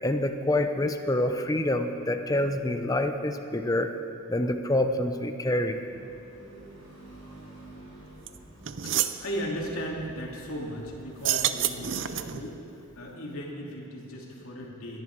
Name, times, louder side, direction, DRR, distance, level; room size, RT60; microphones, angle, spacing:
voice 1, 0.0-3.9 4.3-5.8, left 1 dB, 15° left, 7 dB, 0.7 m, -26 dB
sound 1, 5.7-11.5, right 1 dB, 80° right, 4.2 m, -50 dB
sound 2, 8.3-8.4 8.6-9.2 11.1-12.5, right 10 dB, 60° right, 0.5 m, -28 dB
voice 2, 8.8-12.6 12.9-15.0, equal, 85° left, -2 dB, 2.8 m, -36 dB
20.5 x 11.0 x 4.6 m, 2.6 s
head